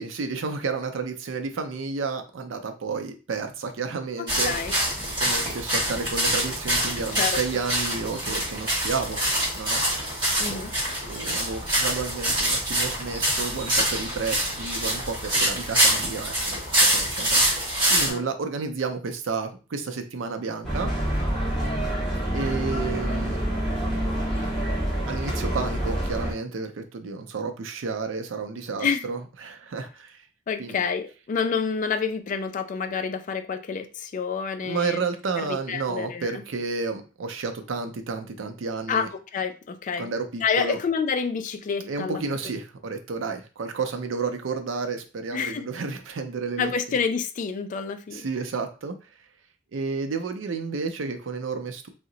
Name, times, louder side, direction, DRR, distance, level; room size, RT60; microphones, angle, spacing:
voice 1, 0.0-4.5 5.2-9.2 9.5-9.8 11.1-17.4 17.9-20.9 22.3-23.4 25.1-30.2 30.6-30.8 34.6-39.1 40.0-40.8 41.8-46.7 48.1-49.0 49.7-51.9, right 4 dB, 90° right, 6 dB, 0.5 m, -31 dB
sound 1, 4.3-18.1, right 1 dB, 25° right, 1.5 m, -25 dB
voice 2, 10.4-10.7 18.1-18.2 28.8-29.1 30.5-35.0 35.4-36.4 38.9-39.1 39.3-40.1 40.4-42.2 45.3-45.6 46.6-48.3, left 6 dB, 40° left, 9 dB, 0.3 m, -28 dB
sound 2, 20.6-26.3, right 1 dB, ahead, 1.4 m, -27 dB
2.7 x 2.1 x 3.8 m, 0.34 s
head